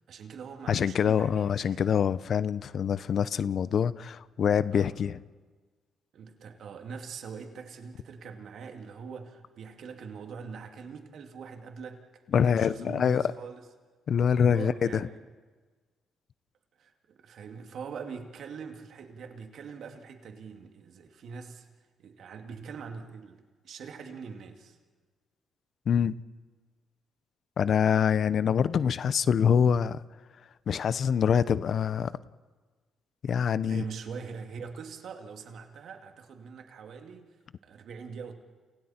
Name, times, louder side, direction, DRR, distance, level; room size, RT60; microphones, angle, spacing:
voice 1, 0.1-1.8 4.7-4.9 6.1-13.6 14.4-15.2 16.8-21.7 22.0-24.8 33.6-37.4 37.6-38.3, right 5 dB, 65° right, 4 dB, 2.3 m, -43 dB
voice 2, 0.7-5.2 12.3-13.3 14.1-15.1 25.9-26.2 27.6-30.0 30.7-32.1 33.2-33.8, left 7 dB, 55° left, 16 dB, 0.7 m, -25 dB
30.0 x 29.0 x 4.4 m, 1.4 s
cardioid pair, 90°, 0 cm